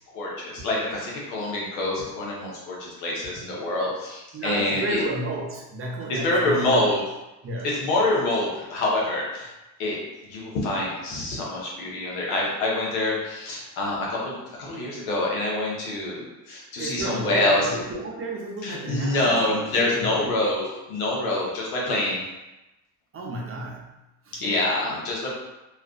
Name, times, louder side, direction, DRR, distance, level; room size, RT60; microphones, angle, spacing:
voice 1, 0.1-5.0 6.1-7.0 7.6-9.5 9.8-10.0 10.3-14.4 14.7-17.7 18.6-22.2 24.4-25.3, left 2 dB, 90° left, -4 dB, 0.8 m, -26 dB
voice 2, 4.3-6.9 7.4-7.7 16.8-20.3 21.2-21.3 23.1-23.9 24.3-24.4, right 1 dB, 30° right, -1 dB, 0.5 m, -32 dB
2.3 x 2.3 x 2.3 m, 1.0 s
supercardioid pair, 75°, 44 cm